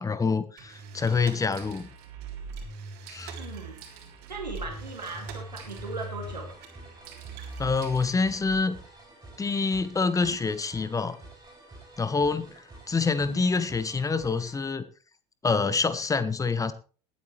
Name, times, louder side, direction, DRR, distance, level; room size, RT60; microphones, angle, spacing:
voice 1, 0.0-1.9 3.1-3.3 7.6-8.8 9.4-11.2 12.0-14.8 15.4-16.7, left 4 dB, 15° left, 14 dB, 1.2 m, -26 dB
sound 1, 0.6-8.6, right 3 dB, 50° right, 3.5 m, -41 dB
voice 2, 3.4-3.8 4.3-6.5 12.9-13.0 13.3-13.5, right 3 dB, 85° right, 2 dB, 2.5 m, -38 dB
sound 2, 4.7-14.7, right 2 dB, 15° right, 7.1 m, -50 dB
20.0 x 8.7 x 3.3 m, 0.37 s
figure-of-eight pair, 75°, 21 cm